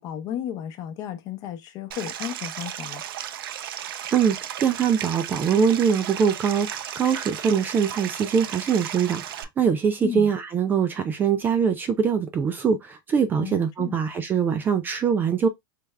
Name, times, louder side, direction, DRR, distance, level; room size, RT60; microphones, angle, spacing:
voice 1, 0.0-3.0 10.0-10.3 13.4-14.0, left 10 dB, 35° left, 0.7 m, -34 dB
Stream, 1.9-9.4, right 10 dB, 80° right, 0.5 m, -35 dB
voice 2, 4.1-15.5, right 7 dB, 15° right, 0.3 m, -23 dB
3.3 x 3.2 x 2.2 m
supercardioid pair, 150°, 12 cm